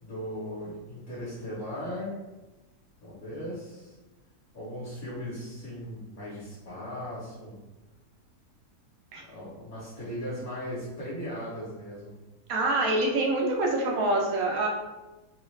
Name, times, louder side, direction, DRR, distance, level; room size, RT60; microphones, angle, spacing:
voice 1, 0.0-2.1 3.0-3.9 4.5-7.6 9.2-12.1, equal, 45° left, -9 dB, 1.2 m, -38 dB
voice 2, 12.5-14.7, right 2 dB, 70° right, 0 dB, 1.0 m, -25 dB
3.0 x 2.4 x 3.1 m, 1.1 s
omnidirectional pair, 1.7 m